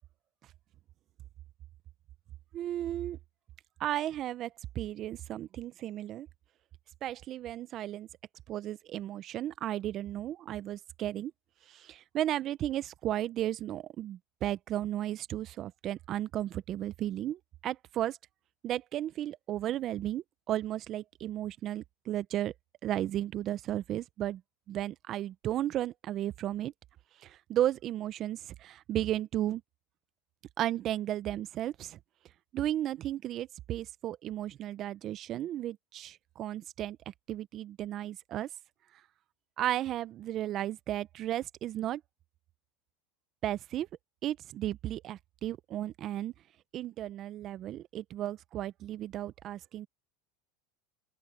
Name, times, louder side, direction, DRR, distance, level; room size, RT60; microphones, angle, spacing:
voice 1, 2.5-3.2 3.8-4.5 4.7-6.3 7.0-8.1 8.5-11.3 11.7-18.2 18.6-22.5 22.8-24.4 24.7-26.7 27.2-29.6 30.6-32.0 32.5-37.0 37.3-38.5 39.6-42.0 43.4-43.9 44.2-46.3 46.7-49.9, right 12 dB, 45° right, 0.8 m, -34 dB
open air
supercardioid pair, 105°, 0 cm